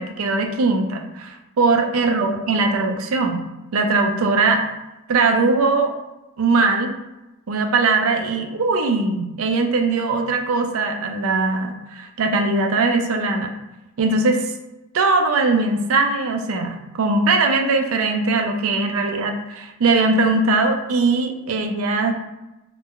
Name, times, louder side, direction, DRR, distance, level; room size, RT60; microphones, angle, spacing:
voice 1, 0.0-3.4 3.7-4.6 5.1-5.9 6.4-6.9 7.5-13.5 14.0-14.5 14.9-22.1, right 3 dB, 70° right, 4 dB, 0.4 m, -20 dB
2.5 x 2.1 x 3.6 m, 0.99 s
head